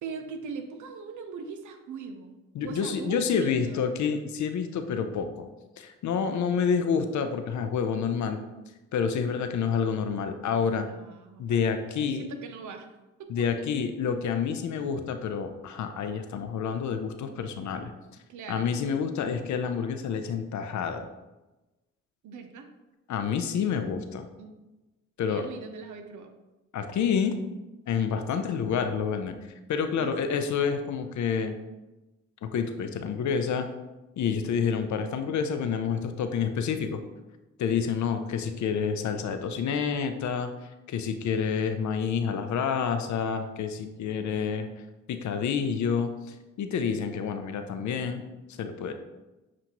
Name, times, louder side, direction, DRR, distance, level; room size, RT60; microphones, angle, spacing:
voice 1, 0.0-3.8 10.7-12.9 13.4-13.5 18.3-18.7 22.2-22.7 24.4-24.5 25.3-26.3 28.3-28.5 30.0-30.5, right 5 dB, 65° right, 6 dB, 0.6 m, -41 dB
voice 2, 2.5-5.5 5.8-8.4 8.9-10.9 11.4-12.3 13.3-17.9 18.5-21.1 23.1-24.3 25.2-25.5 26.7-27.4 27.9-29.4 29.7-31.5 32.5-33.7 34.2-37.0 37.6-40.5 40.9-44.7 45.1-48.2 48.6-48.9, left 6 dB, 65° left, 8 dB, 0.5 m, -28 dB
7.2 x 2.5 x 2.9 m, 1.1 s
supercardioid pair, 45°, 32 cm